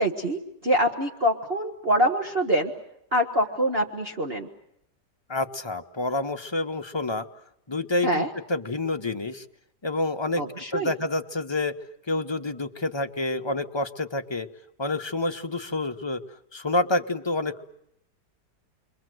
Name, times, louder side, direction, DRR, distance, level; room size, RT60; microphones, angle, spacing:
voice 1, 0.0-2.7 3.1-4.5 8.0-8.3 10.4-10.9, equal, 35° right, 2 dB, 1.7 m, -25 dB
voice 2, 5.3-7.2 7.7-9.4 9.8-10.4 10.7-11.7 12.1-14.5 14.8-16.2 16.5-17.7, left 2 dB, 20° left, 5 dB, 0.7 m, -28 dB
29.0 x 23.5 x 7.8 m, 0.78 s
omnidirectional pair, 1.8 m